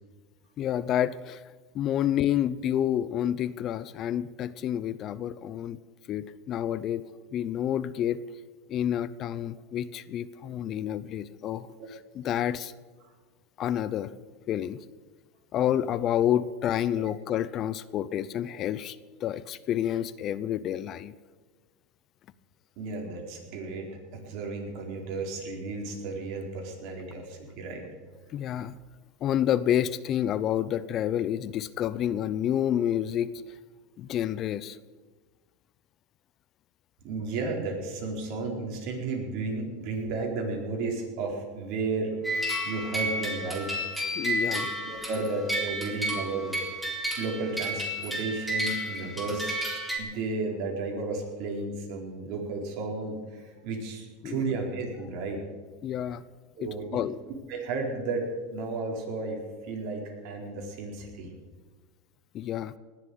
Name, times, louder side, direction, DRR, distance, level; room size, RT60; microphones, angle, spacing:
voice 1, 0.6-1.4 1.7-5.8 6.1-7.0 7.3-8.2 8.7-12.7 13.6-14.1 14.5-14.8 15.5-21.1 28.3-28.8 29.2-33.5 34.0-34.8 44.2-44.7 54.2-54.4 55.8-56.2 56.6-57.2 62.3-62.7, left 10 dB, 40° left, 17 dB, 0.6 m, -29 dB
voice 2, 22.8-27.9 37.0-43.7 44.0-44.1 44.5-46.6 47.2-49.6 50.0-55.4 56.6-57.0 57.5-59.4 59.7-61.3, right 3 dB, 55° right, 1 dB, 4.4 m, -33 dB
sound 1, 42.2-50.0, right 1 dB, 5° right, 4.0 m, -31 dB
19.5 x 7.4 x 9.3 m, 1.4 s
supercardioid pair, 120°, 0 cm